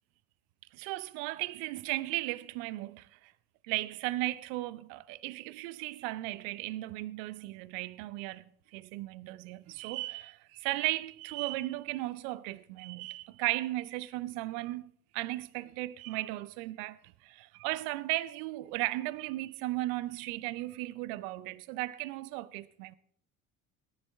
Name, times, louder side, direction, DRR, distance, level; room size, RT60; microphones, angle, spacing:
voice 1, 0.7-3.3 3.6-22.9, right 18 dB, 65° right, 0.6 m, -36 dB
17.5 x 10.5 x 3.5 m
hypercardioid pair, 60°, 44 cm